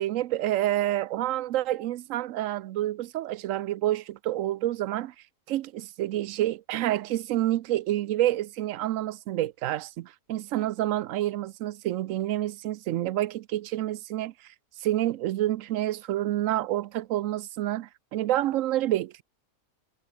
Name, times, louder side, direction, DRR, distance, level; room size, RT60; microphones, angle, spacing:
voice 1, 0.0-5.1 5.5-14.5 14.8-19.2, right 14 dB, 70° right, 0.9 m, -28 dB
omnidirectional pair, 1.5 m